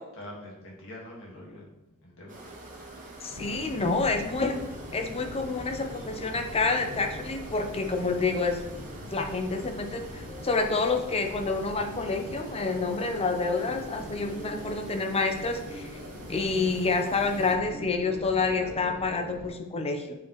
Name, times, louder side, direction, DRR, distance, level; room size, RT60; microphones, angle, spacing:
voice 1, 0.1-2.5, left 1 dB, 65° left, -2 dB, 1.7 m, -45 dB
sound 1, 2.3-17.6, right 2 dB, 40° right, 1.3 m, -47 dB
voice 2, 3.2-4.6 4.9-8.6 9.1-15.9 16.3-20.2, left 3 dB, 25° left, 5 dB, 0.6 m, -28 dB
sound 2, 3.3-19.5, left 1 dB, 80° left, 1.1 m, -42 dB
7.1 x 4.6 x 3.0 m, 1.0 s
head